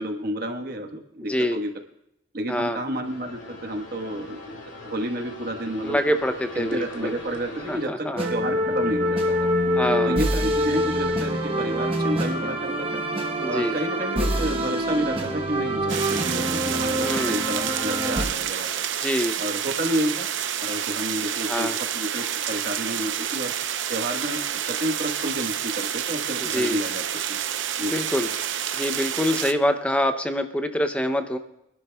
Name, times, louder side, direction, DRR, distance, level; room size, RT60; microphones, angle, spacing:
voice 1, 0.0-1.7 2.3-6.0 6.5-9.5 10.0-13.0 13.5-18.7 19.4-20.3 20.6-23.5 23.9-27.0 27.3-27.4 27.8-27.9, right 1 dB, 50° right, 4 dB, 1.3 m, -30 dB
voice 2, 1.3-1.6 2.5-2.8 5.8-7.2 7.7-8.3 9.8-10.2 13.4-13.7 17.0-17.4 19.0-19.4 21.5-21.7 26.4-26.8 27.8-28.3 28.7-31.4, left 1 dB, 5° left, 8 dB, 0.5 m, -25 dB
sound 1, 3.0-7.9, left 2 dB, 85° left, 2.3 m, -41 dB
sound 2, 8.2-18.2, equal, 30° right, 0.9 m, -25 dB
sound 3, 15.9-29.5, right 9 dB, 80° right, 0.7 m, -29 dB
25.5 x 11.5 x 2.3 m, 0.82 s
head